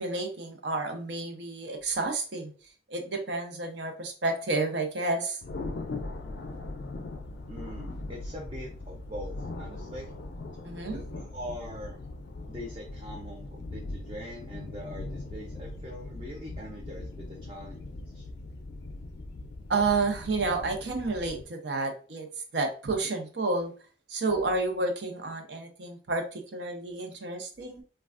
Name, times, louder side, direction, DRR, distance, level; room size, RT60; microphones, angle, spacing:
voice 1, 0.0-2.5 2.9-5.4 10.6-11.0 19.7-22.3 22.5-23.7 24.1-27.8, right 3 dB, 80° right, 4 dB, 0.6 m, -30 dB
Thunder, 5.4-21.4, left 2 dB, 65° left, 0.4 m, -40 dB
voice 2, 7.5-10.1 10.9-12.0 12.5-17.8 18.1-18.3, equal, 25° right, 0 dB, 0.4 m, -42 dB
3.2 x 2.3 x 2.4 m, 0.38 s
head